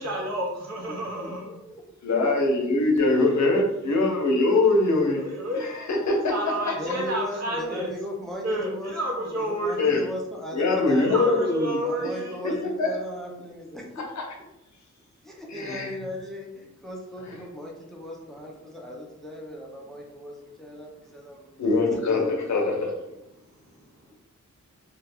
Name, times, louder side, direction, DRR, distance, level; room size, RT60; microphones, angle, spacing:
voice 1, 0.0-1.5 5.1-5.7 6.3-7.9 8.4-10.1 11.0-12.4 24.0-24.1, equal, 60° right, -3 dB, 0.8 m, -30 dB
voice 2, 2.0-5.2 5.8-6.3 9.8-10.0 10.5-11.8 12.4-12.9 15.5-15.9 21.6-22.2 22.5-22.9, left 2 dB, 65° left, 1 dB, 0.6 m, -22 dB
voice 3, 6.8-11.5 11.8-14.1 15.2-21.6 21.9-22.7, left 1 dB, ahead, -1 dB, 0.4 m, -37 dB
2.3 x 2.1 x 3.4 m, 0.86 s
wide cardioid pair, 170°, 31 cm